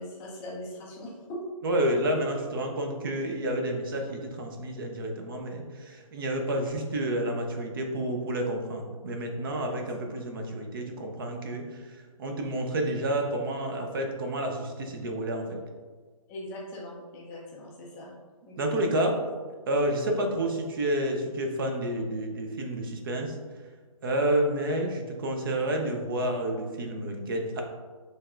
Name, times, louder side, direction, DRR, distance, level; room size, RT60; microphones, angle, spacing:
voice 1, 0.0-1.4 2.1-2.2 9.5-9.6 10.0-10.2 16.3-18.1 18.5-18.7, left 1 dB, 10° left, -4 dB, 0.4 m, -41 dB
voice 2, 1.6-15.6 18.6-19.2 19.7-23.4 24.0-27.6, right 1 dB, 40° right, 3 dB, 0.7 m, -29 dB
6.5 x 3.3 x 2.5 m, 1.5 s
figure-of-eight pair, 150°, 19 cm